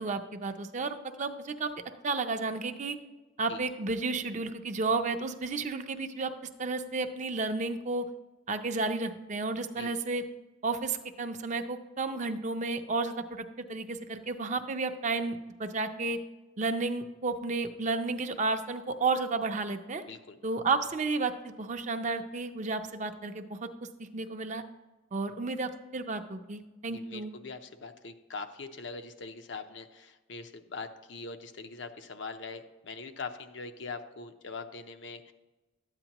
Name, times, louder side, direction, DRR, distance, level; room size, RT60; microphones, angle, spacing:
voice 1, 0.0-1.7 2.0-3.0 3.4-6.3 6.6-8.1 8.5-10.2 10.6-13.4 13.7-16.2 16.6-20.0 20.4-23.7 24.0-24.6 25.1-27.3, right 3 dB, 40° right, 7 dB, 0.5 m, -32 dB
voice 2, 26.9-35.3, left 4 dB, 65° left, 7 dB, 0.7 m, -42 dB
12.0 x 8.9 x 2.9 m, 1.1 s
head